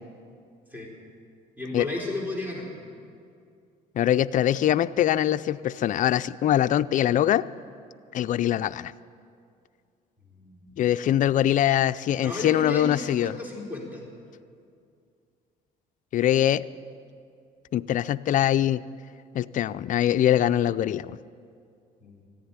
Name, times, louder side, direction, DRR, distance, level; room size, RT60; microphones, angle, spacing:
voice 1, 1.6-2.7 10.3-10.6 12.1-14.0 22.0-22.3, left 2 dB, 10° right, -2 dB, 3.9 m, -34 dB
voice 2, 3.9-7.4 8.1-8.9 10.8-13.3 16.1-16.6 17.7-18.8 19.3-21.2, left 11 dB, 50° left, 14 dB, 0.4 m, -23 dB
14.5 x 10.0 x 9.6 m, 2.3 s
cardioid pair, 110°, 17 cm